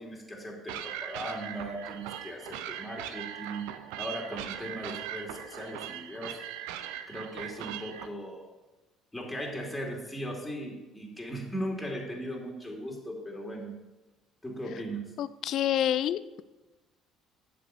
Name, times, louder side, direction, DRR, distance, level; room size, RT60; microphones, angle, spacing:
voice 1, 0.0-6.4 7.1-8.5 9.1-13.7 14.4-15.2, equal, 10° left, -1 dB, 2.9 m, -38 dB
sound 1, 0.7-8.1, right 10 dB, 75° right, 0.6 m, -40 dB
voice 2, 15.2-16.4, left 11 dB, 60° left, 16 dB, 0.4 m, -28 dB
8.5 x 6.5 x 6.8 m, 1.1 s
hypercardioid pair, 60°, 0 cm